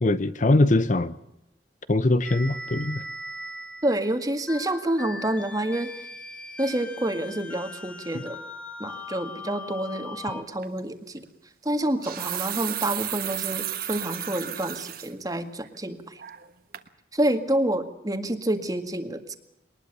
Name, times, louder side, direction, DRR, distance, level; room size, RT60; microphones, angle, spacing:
voice 1, 0.0-1.1 1.9-3.0 8.1-8.2, left 2 dB, 45° left, 14 dB, 0.8 m, -22 dB
sound 1, 2.2-10.4, left 2 dB, 5° left, 1.4 m, -39 dB
voice 2, 3.8-5.9 6.6-8.4 8.8-11.3 11.6-16.2 17.1-19.4, right 1 dB, 20° right, 7 dB, 1.9 m, -28 dB
sound 2, 10.6-10.8 11.8-15.1 15.6-15.7 16.2-16.5 16.7-16.9, right 12 dB, 55° right, 1.4 m, -33 dB
22.0 x 20.0 x 6.8 m, 0.86 s
head